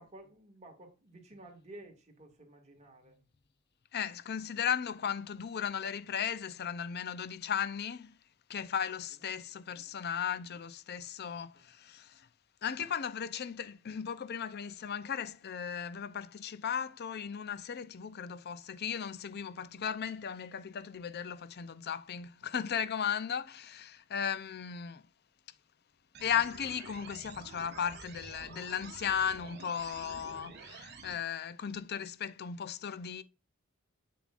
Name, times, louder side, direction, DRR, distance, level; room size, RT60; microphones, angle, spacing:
voice 1, 0.0-3.2 9.8-10.0 11.5-11.7, right 1 dB, 35° right, 2.1 m, -53 dB
voice 2, 3.9-8.1 8.5-12.2 12.6-25.0 26.2-33.2, left 8 dB, 50° left, 0.5 m, -36 dB
sound 1, 26.1-31.1, right 4 dB, 55° right, 1.3 m, -49 dB
7.7 x 6.9 x 2.5 m
head